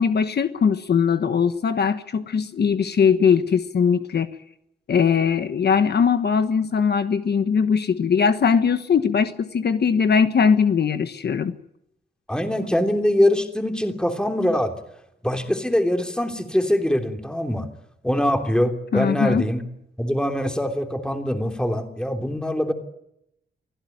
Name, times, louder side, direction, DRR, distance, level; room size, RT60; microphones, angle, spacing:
voice 1, 0.0-4.3 4.9-11.5 18.9-19.4, left 6 dB, 60° left, 10 dB, 1.3 m, -20 dB
voice 2, 12.3-14.7 15.2-17.6 18.0-19.6 20.0-22.7, left 1 dB, 5° left, 5 dB, 3.1 m, -23 dB
25.0 x 16.0 x 9.3 m, 0.78 s
wide cardioid pair, 120°, 19 cm